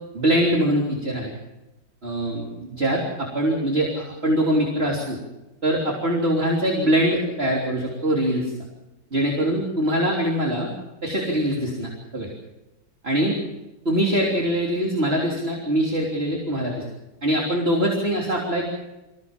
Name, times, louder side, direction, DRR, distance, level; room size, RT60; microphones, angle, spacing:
voice 1, 0.1-1.3 2.0-5.2 5.6-8.5 9.1-10.7 11.0-12.3 13.0-13.3 13.9-16.8 17.2-18.7, equal, 35° right, -2 dB, 3.6 m, -23 dB
25.5 x 16.0 x 7.3 m, 1.0 s
omnidirectional pair, 1.9 m